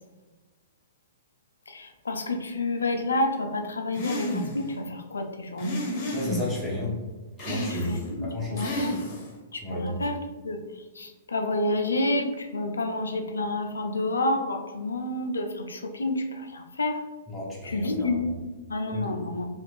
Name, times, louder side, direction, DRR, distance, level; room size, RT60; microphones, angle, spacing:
voice 1, 1.7-5.8 7.9-8.9 9.5-10.2 10.4-10.6 11.0-16.2 16.5-17.0 17.6-18.3 18.7-19.5, left 2 dB, 85° left, 4 dB, 0.4 m, -29 dB
sound 1, 3.9-4.7 5.6-6.6 7.4-8.1 8.6-9.4, equal, 45° left, 0.8 m, -32 dB
voice 2, 6.1-7.0 7.5-8.7 9.6-10.1 17.3-18.3 18.9-19.2, left 2 dB, 5° left, -6 dB, 0.9 m, -32 dB
2.4 x 2.4 x 3.1 m, 1.2 s
hypercardioid pair, 115°, 0 cm